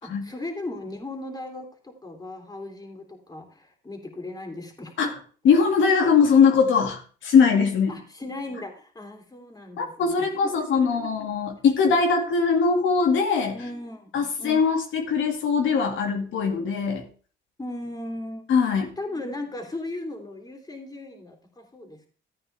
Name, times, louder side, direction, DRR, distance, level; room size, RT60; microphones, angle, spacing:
voice 1, 0.0-5.2 7.9-11.1 13.5-14.1 14.4-14.7 17.6-18.4 19.0-22.1, left 2 dB, 20° left, 2 dB, 3.3 m, -37 dB
voice 2, 5.4-8.0 9.8-13.6 14.1-17.1 18.5-19.0, left 5 dB, 75° left, 2 dB, 2.2 m, -21 dB
14.0 x 9.0 x 3.4 m, 0.40 s
cardioid pair, 90°, 20 cm